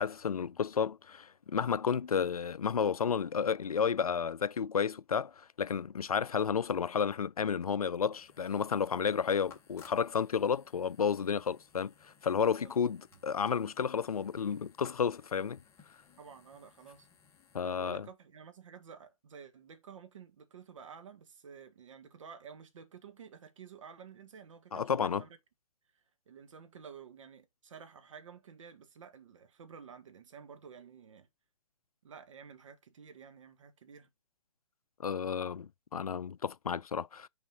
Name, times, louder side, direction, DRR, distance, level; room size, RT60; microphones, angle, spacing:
voice 1, 0.0-15.6 17.5-18.0 24.7-25.2 35.0-37.3, left 7 dB, 90° left, 0.4 m, -32 dB
sound 1, 8.1-17.6, left 6 dB, 15° left, 1.6 m, -61 dB
voice 2, 16.2-17.1 17.6-25.4 25.9-31.3 32.0-34.1, right 6 dB, 60° right, 1.6 m, -51 dB
6.1 x 4.2 x 4.3 m
hypercardioid pair, 135°, 18 cm